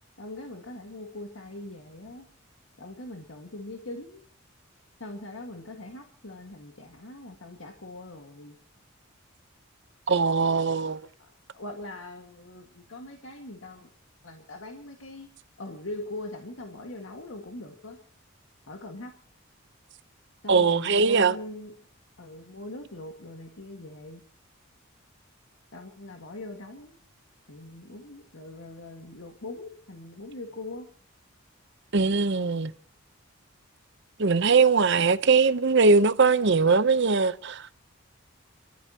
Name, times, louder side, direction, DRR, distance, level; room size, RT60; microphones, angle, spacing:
voice 1, 0.2-2.3 2.8-4.2 5.0-8.6 11.2-13.9 14.2-15.3 15.6-18.0 18.7-19.1 20.4-21.7 22.2-24.2 25.7-27.0 27.5-30.9, left 2 dB, 70° left, 1.8 m, -41 dB
voice 2, 10.1-11.0 20.5-21.3 31.9-32.7 34.2-37.8, right 4 dB, 55° right, 0.8 m, -21 dB
29.5 x 13.5 x 2.9 m
head